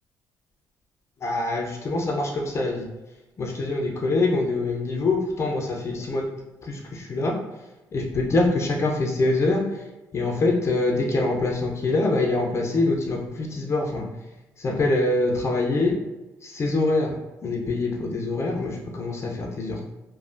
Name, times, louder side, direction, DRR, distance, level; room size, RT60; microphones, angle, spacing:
voice 1, 1.2-2.8 3.4-6.2 6.7-7.4 7.9-9.6 10.1-14.0 14.6-15.9 16.4-17.1 17.4-19.8, left 2 dB, 40° left, 0 dB, 0.6 m, -24 dB
3.2 x 2.3 x 2.5 m, 1.1 s
supercardioid pair, 70°, 7 cm